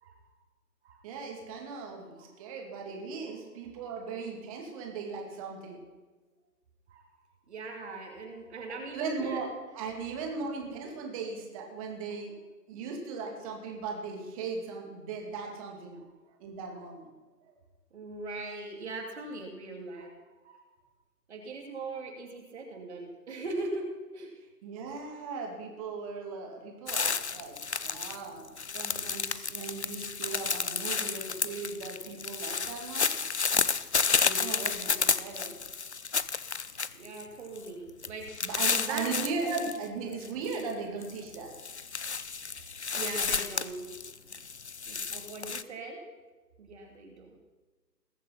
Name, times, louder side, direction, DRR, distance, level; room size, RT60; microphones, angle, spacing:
voice 1, 1.0-5.8 8.9-9.5 9.7-12.3 12.7-16.0 16.4-17.1 17.5-17.6 24.6-33.2 34.2-35.5 38.4-41.5, right 4 dB, 20° right, 1 dB, 2.5 m, -38 dB
voice 2, 7.5-9.4 17.9-20.2 20.4-20.6 21.3-24.3 25.0-25.1 36.9-39.7 42.9-43.9 44.9-46.0 46.6-47.4, right 2 dB, 40° right, 1 dB, 2.6 m, -40 dB
sound 1, 26.9-28.2 28.4-37.2 37.6-37.7 38.0-39.8 40.1-40.6 41.0-45.6, left 5 dB, 45° left, 0.4 m, -31 dB
21.0 x 7.4 x 5.8 m, 1.3 s
figure-of-eight pair, 145°, 49 cm